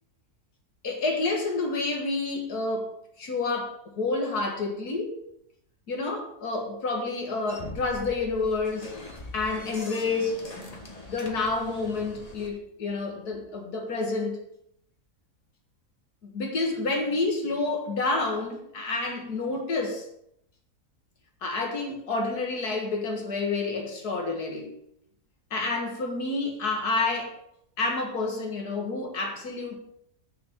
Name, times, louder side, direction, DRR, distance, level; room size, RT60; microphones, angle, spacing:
voice 1, 0.8-5.2 5.9-8.9 9.3-10.7 11.1-14.4 16.3-20.0 21.4-24.7 25.5-27.3 27.8-29.8, left 3 dB, 90° left, 2.3 m, -29 dB
sound 1, 7.5-12.5, left 2 dB, 25° left, 1.4 m, -42 dB
7.2 x 6.6 x 6.8 m
omnidirectional pair, 1.6 m